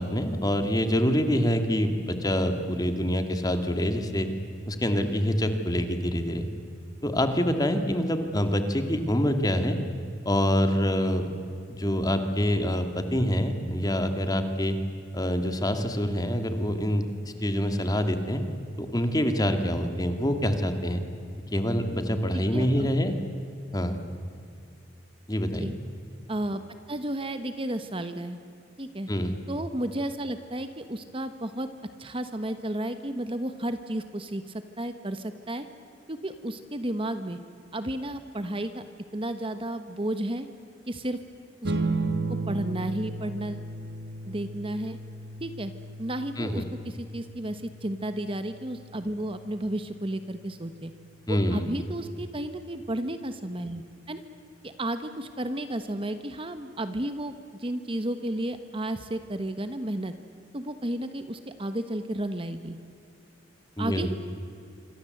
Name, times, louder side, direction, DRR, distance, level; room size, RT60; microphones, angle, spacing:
voice 1, 0.0-4.3 4.7-6.5 7.0-9.8 10.2-11.3 11.8-14.8 15.1-17.0 17.4-18.4 18.8-21.0 21.5-23.1 23.7-24.0 25.3-25.7 29.1-29.4 46.4-46.7 51.3-51.7 63.8-64.1, equal, 20° left, 7 dB, 2.2 m, -26 dB
voice 2, 22.5-22.9 25.6-25.7 26.3-26.6 26.9-28.4 28.8-29.1 29.5-31.7 32.0-35.7 36.1-37.4 37.7-38.8 39.1-40.5 40.9-41.2 41.6-41.7 42.5-43.7 44.3-45.0 45.4-45.7 46.0-50.9 51.3-54.2 54.6-57.3 57.6-60.1 60.5-62.8 63.8-64.1, right 1 dB, 30° right, 9 dB, 1.2 m, -32 dB
sound 1, 41.6-52.4, right 2 dB, 60° right, 1.7 m, -36 dB
27.0 x 25.0 x 7.9 m, 2.5 s
head